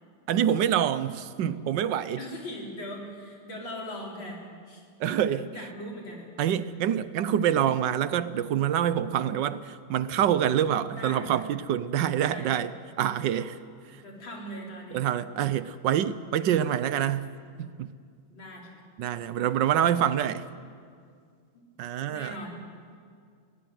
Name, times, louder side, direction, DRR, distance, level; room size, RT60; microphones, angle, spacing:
voice 1, 0.3-2.2 5.0-5.7 6.4-12.7 13.0-13.6 13.9-14.0 14.9-17.3 17.6-17.9 19.0-20.5 21.8-22.4, right 10 dB, 70° right, 1.3 m, -26 dB
voice 2, 2.2-4.8 5.3-6.3 10.9-11.3 12.2-12.6 13.9-15.0 18.3-18.8 21.5-21.6 22.1-22.6, left 1 dB, 80° left, 4.8 m, -40 dB
21.0 x 17.0 x 9.4 m
omnidirectional pair, 2.1 m